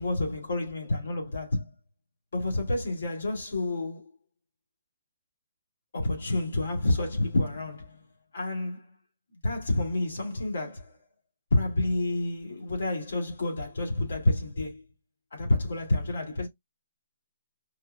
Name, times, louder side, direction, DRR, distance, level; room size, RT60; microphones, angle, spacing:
voice 1, 0.0-1.7 2.3-4.1 5.9-8.0 8.3-8.8 9.4-10.9 11.5-14.8 15.3-16.5, left 2 dB, 75° left, 2.2 m, -29 dB
4.8 x 2.3 x 2.4 m
hypercardioid pair, 155°, 0 cm